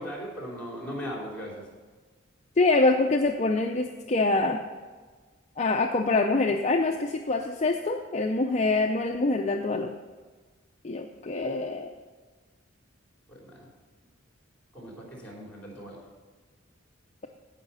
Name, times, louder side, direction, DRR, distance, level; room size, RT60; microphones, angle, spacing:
voice 1, 0.0-1.6 13.3-13.6 14.7-16.0, equal, 5° left, -2 dB, 3.2 m, -38 dB
voice 2, 2.6-4.6 5.6-9.9 10.8-11.9, left 3 dB, 35° left, 3 dB, 0.5 m, -25 dB
16.5 x 5.7 x 5.5 m, 1.4 s
head